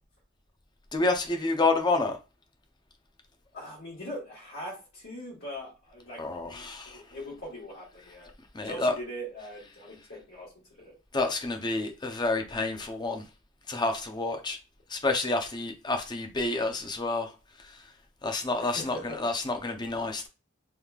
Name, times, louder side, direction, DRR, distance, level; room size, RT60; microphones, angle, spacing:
voice 1, 0.9-2.2 6.2-7.0 8.5-9.0 11.1-13.2 13.7-14.6 14.9-17.3 18.2-20.3, left 3 dB, 20° left, 0.6 m, -29 dB
voice 2, 3.5-8.3 8.6-10.5 10.8-10.9 18.6-19.2, equal, 55° left, 1.6 m, -41 dB
3.5 x 3.1 x 2.3 m
head